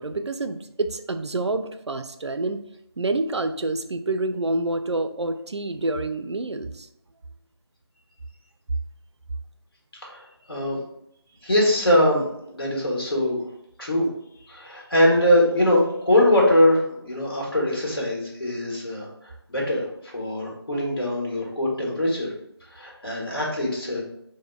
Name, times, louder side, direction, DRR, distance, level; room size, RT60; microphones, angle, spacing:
voice 1, 0.0-2.6 3.0-6.9, right 2 dB, 90° right, 8 dB, 0.4 m, -27 dB
voice 2, 10.0-10.8 11.4-13.4 13.8-14.1 14.5-19.1 19.5-19.8 20.1-22.3 22.7-24.0, left 1 dB, 55° left, -3 dB, 1.4 m, -22 dB
4.9 x 2.1 x 2.3 m, 0.76 s
figure-of-eight pair, 165°, 14 cm